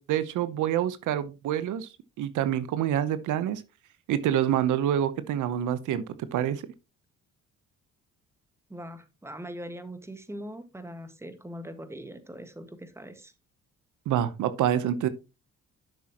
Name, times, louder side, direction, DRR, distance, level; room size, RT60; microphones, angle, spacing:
voice 1, 0.0-1.9 2.2-3.6 4.1-6.0 6.3-6.6 14.1-15.1, right 10 dB, 80° right, 0.9 m, -27 dB
voice 2, 8.7-13.3, equal, 10° right, 1.6 m, -41 dB
11.5 x 6.3 x 2.9 m
cardioid pair, 90°, 30 cm